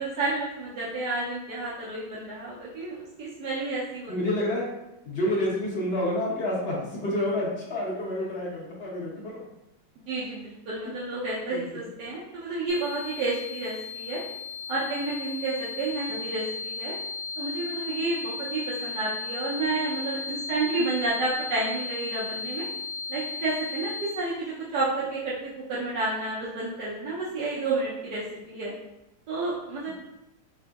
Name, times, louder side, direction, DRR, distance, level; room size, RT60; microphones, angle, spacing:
voice 1, 0.0-4.1 10.1-14.2 14.7-17.0 17.4-22.7 23.1-28.7 29.3-29.9, right 2 dB, 70° right, -7 dB, 1.2 m, -30 dB
voice 2, 4.1-4.7 5.0-9.4 11.5-11.8 29.8-29.9, left 1 dB, 60° left, -5 dB, 0.6 m, -29 dB
sound 1, 12.7-24.1, left 4 dB, 80° left, 1.3 m, -35 dB
3.7 x 3.4 x 2.3 m, 0.91 s
omnidirectional pair, 2.0 m